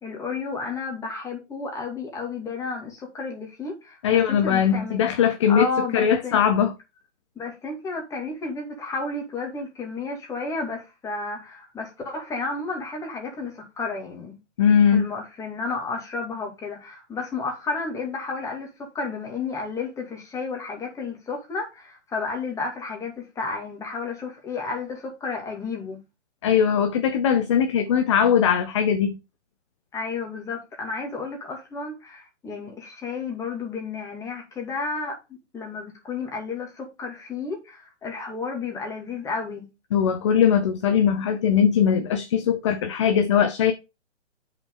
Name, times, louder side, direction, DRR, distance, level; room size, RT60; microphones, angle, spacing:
voice 1, 0.0-5.0 5.5-6.4 7.4-14.4 14.9-26.0 29.9-35.2 35.5-39.7, left 4 dB, 10° left, 2.3 m, -32 dB
voice 2, 4.0-5.7 5.9-6.7 14.6-15.1 26.4-29.2 39.9-43.7, left 8 dB, 25° left, 0.6 m, -20 dB
9.0 x 5.7 x 3.8 m
hypercardioid pair, 150°, 36 cm